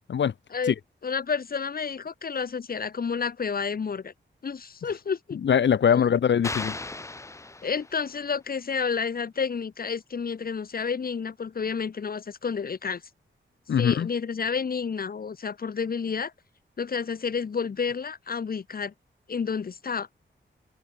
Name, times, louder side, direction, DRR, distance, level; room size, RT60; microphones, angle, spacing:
voice 1, 1.0-4.1 4.4-5.4 5.9-6.0 7.6-13.0 13.8-16.3 16.8-18.9 19.3-20.1, left 6 dB, 50° left, 1.3 m, -30 dB
voice 2, 5.4-6.7 13.7-14.1, left 8 dB, 65° left, 0.8 m, -22 dB
sound 1, 6.4-8.2, left 2 dB, 15° left, 0.5 m, -36 dB
wide cardioid pair, 175°, 20 cm